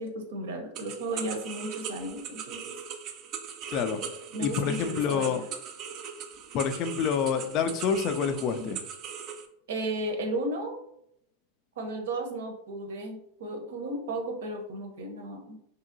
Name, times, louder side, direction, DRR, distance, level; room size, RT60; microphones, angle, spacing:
voice 1, 0.0-2.7 4.3-5.4 7.6-7.7 8.5-8.7 9.7-10.7 11.8-15.6, right 1 dB, 80° right, 3 dB, 0.7 m, -34 dB
sound 1, 0.7-9.5, right 7 dB, 40° right, 0.4 m, -39 dB
voice 2, 3.7-4.0 4.4-5.4 6.5-8.8, left 7 dB, 45° left, 8 dB, 0.3 m, -27 dB
2.7 x 2.7 x 2.6 m, 0.74 s
supercardioid pair, 125°, 0 cm